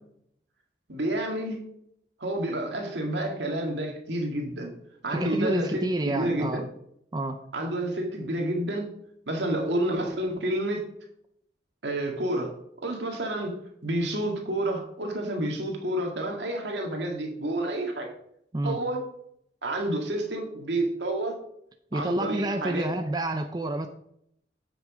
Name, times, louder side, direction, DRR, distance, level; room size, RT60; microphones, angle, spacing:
voice 1, 0.9-1.6 2.2-4.7 5.0-6.7 7.5-8.9 9.3-10.9 11.8-12.5 12.8-13.6 13.8-18.1 18.6-19.0 19.6-21.4 21.9-23.0, right 1 dB, 80° right, 1 dB, 2.0 m, -29 dB
voice 2, 5.1-6.6 7.1-7.4 18.5-18.8 21.9-23.9, right 1 dB, 25° right, 6 dB, 0.5 m, -29 dB
9.3 x 6.2 x 5.0 m, 0.73 s
head